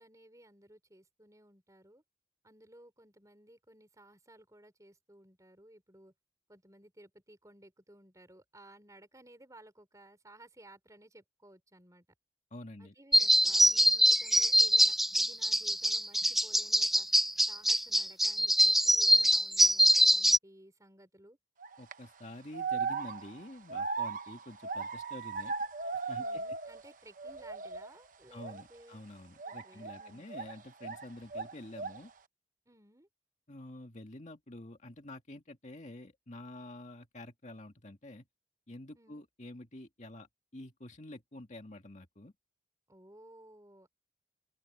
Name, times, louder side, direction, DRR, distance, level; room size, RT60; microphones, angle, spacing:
voice 1, 0.0-2.0 2.4-6.1 6.5-12.1 12.8-21.4 26.2-29.0 29.4-30.3 32.7-33.1 38.9-39.2 42.9-43.9, right 1 dB, 20° right, 5.5 m, -58 dB
voice 2, 12.5-12.9 21.8-25.5 26.1-26.4 28.3-32.1 33.5-38.3 38.7-42.3, left 1 dB, 40° left, 2.0 m, -48 dB
sound 1, 13.1-20.4, equal, ahead, 0.4 m, -24 dB
sound 2, 21.6-21.9 22.5-26.9 27.2-27.9 28.4-28.6 29.4-31.0 31.3-32.1, right 4 dB, 50° right, 1.1 m, -37 dB
open air
head